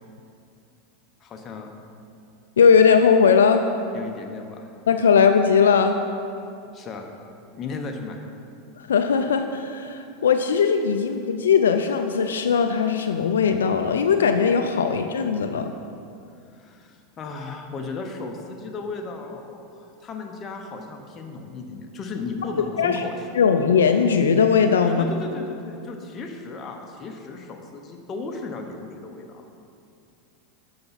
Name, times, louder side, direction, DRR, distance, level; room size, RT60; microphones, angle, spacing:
voice 1, 1.2-1.7 3.9-4.7 6.7-7.1 7.6-8.3 16.5-23.3 24.9-29.4, left 3 dB, 35° left, 3 dB, 0.8 m, -35 dB
voice 2, 2.6-3.6 4.9-6.0 8.8-15.7 22.8-23.0 23.3-25.1, left 6 dB, 85° left, 6 dB, 0.3 m, -19 dB
6.6 x 5.8 x 4.1 m, 2.5 s
hypercardioid pair, 100°, 0 cm